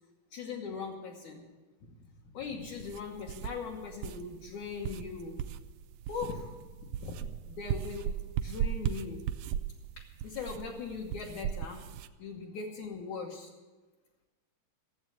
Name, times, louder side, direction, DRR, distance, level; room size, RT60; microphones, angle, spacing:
voice 1, 0.3-1.4 1.9-2.0 2.3-5.3 6.1-6.5 6.8-6.9 7.5-8.2 8.4-9.2 10.0-11.8 12.2-13.5, left 5 dB, 65° left, -2 dB, 2.3 m, -40 dB
sound 1, 2.6-12.1, right 10 dB, 80° right, 1.9 m, -37 dB
14.5 x 7.9 x 7.8 m, 1.2 s
omnidirectional pair, 4.0 m